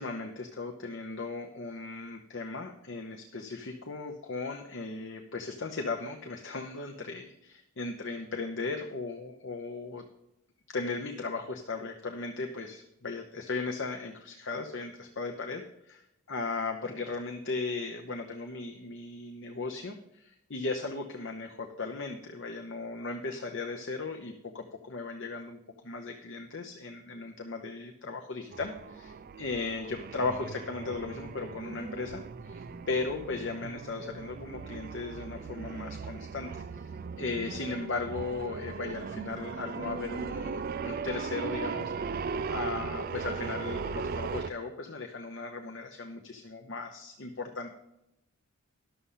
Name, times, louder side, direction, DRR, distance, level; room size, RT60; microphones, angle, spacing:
voice 1, 0.0-10.0 10.7-42.2 42.5-47.7, left 3 dB, 55° left, 3 dB, 0.8 m, -37 dB
sound 1, 28.5-44.5, right 5 dB, 40° right, 0.3 m, -38 dB
11.5 x 6.9 x 5.6 m, 0.85 s
head